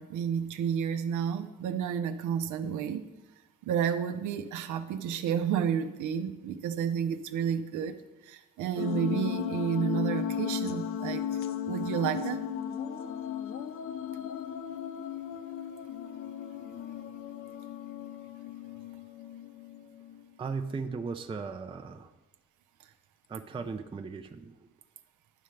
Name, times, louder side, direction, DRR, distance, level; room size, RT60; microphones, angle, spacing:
voice 1, 0.0-3.0 3.7-8.0 8.3-11.3 11.7-12.4, right 8 dB, 80° right, 9 dB, 0.6 m, -31 dB
sound 1, 8.8-20.2, left 8 dB, 45° left, 0.5 m, -36 dB
voice 2, 20.4-22.1 23.3-24.6, right 4 dB, 20° right, 6 dB, 0.4 m, -37 dB
10.0 x 5.6 x 3.2 m, 1.1 s
cardioid pair, 90°, 30 cm